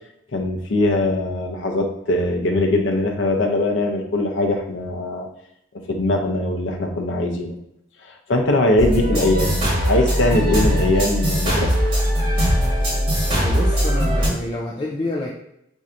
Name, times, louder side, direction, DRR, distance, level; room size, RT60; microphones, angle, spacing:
voice 1, 0.3-5.3 5.9-7.6 8.0-11.7, left 2 dB, 90° left, 3 dB, 0.6 m, -21 dB
sound 1, 8.8-14.3, equal, 30° right, 1.3 m, -20 dB
voice 2, 13.4-15.3, left 1 dB, 25° left, -3 dB, 0.3 m, -28 dB
4.3 x 2.6 x 2.5 m, 0.76 s
head